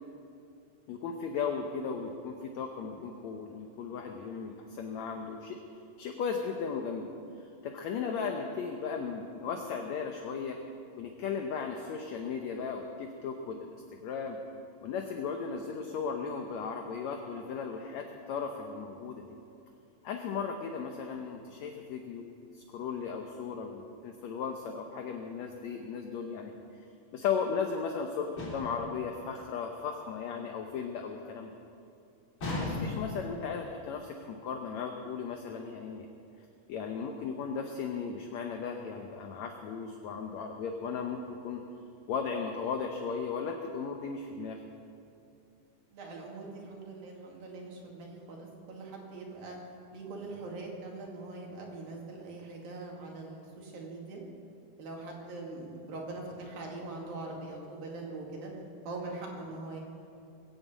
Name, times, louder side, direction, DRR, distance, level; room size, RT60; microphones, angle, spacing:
voice 1, 0.9-5.6 6.0-7.1 7.4-10.6 11.0-13.8 14.0-14.4 14.8-19.3 20.0-26.6 27.1-31.5 32.4-36.1 36.7-41.6 42.1-44.6, left 6 dB, 70° left, 3 dB, 1.7 m, -36 dB
sound 1, 28.4-28.9 32.4-33.2, left 2 dB, 40° left, 4.1 m, -35 dB
voice 2, 45.9-49.6 49.9-54.2 54.8-58.5 58.9-59.8, right 2 dB, 75° right, -1 dB, 4.1 m, -42 dB
21.0 x 8.2 x 8.3 m, 2.6 s
omnidirectional pair, 4.1 m